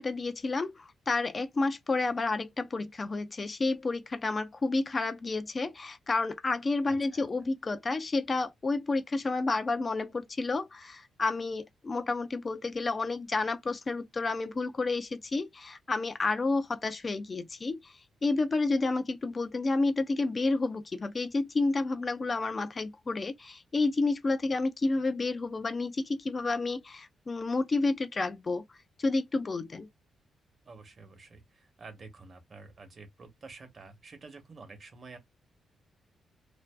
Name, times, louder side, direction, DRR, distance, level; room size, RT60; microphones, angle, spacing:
voice 1, 0.0-29.9, left 3 dB, 35° left, 0.4 m, -30 dB
voice 2, 6.8-7.2 30.6-35.2, right 3 dB, 45° right, 0.9 m, -49 dB
2.5 x 2.3 x 2.2 m
cardioid pair, 95°, 0 cm